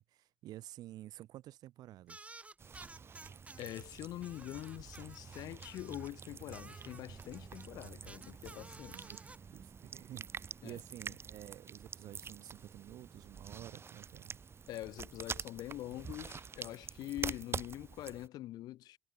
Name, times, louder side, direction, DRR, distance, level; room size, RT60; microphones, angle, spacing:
voice 1, 0.0-2.3 8.9-14.4, right 14 dB, 85° right, 0.7 m, -51 dB
sound 1, 2.1-3.8 4.2-6.1 6.5-9.4, right 2 dB, 20° right, 0.8 m, -54 dB
sound 2, 2.6-18.3, right 6 dB, 40° right, 0.4 m, -47 dB
voice 2, 3.6-9.1 10.6-10.8 14.7-19.0, left 15 dB, 85° left, 0.5 m, -44 dB
supercardioid pair, 65°, 7 cm